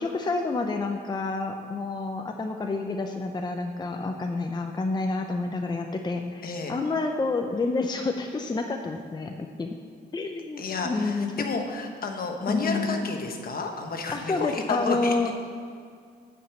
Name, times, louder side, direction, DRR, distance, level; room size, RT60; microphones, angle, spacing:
voice 1, 0.0-9.8 10.1-11.3 12.5-13.1 14.1-15.4, left 3 dB, 25° left, 4 dB, 0.6 m, -29 dB
voice 2, 6.4-6.7 10.6-15.2, left 4 dB, 60° left, 3 dB, 1.1 m, -31 dB
8.7 x 5.3 x 7.0 m, 2.2 s
wide cardioid pair, 120°, 17 cm